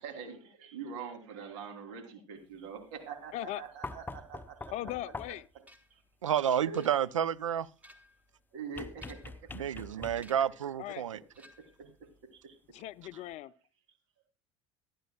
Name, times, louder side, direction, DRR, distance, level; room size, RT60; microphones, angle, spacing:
voice 1, 0.0-4.7 5.0-5.3 5.9-6.0 6.6-6.9 8.5-10.3 11.6-11.9 12.3-12.6, right 5 dB, 65° right, 3.0 m, -44 dB
sound 1, 3.8-5.6 8.8-10.5 12.0-12.1, left 3 dB, 10° left, 0.7 m, -44 dB
voice 2, 4.7-5.5 10.8-11.0 12.7-13.5, left 14 dB, 45° left, 0.5 m, -39 dB
sound 2, 5.7-6.0 6.7-7.3 7.7-8.3 8.9-9.5 10.2-10.6 11.3-11.8, equal, 10° right, 1.9 m, -58 dB
voice 3, 6.2-7.7 9.5-11.2, right 9 dB, 80° right, 0.5 m, -30 dB
23.5 x 10.0 x 2.3 m
figure-of-eight pair, 70°, 16 cm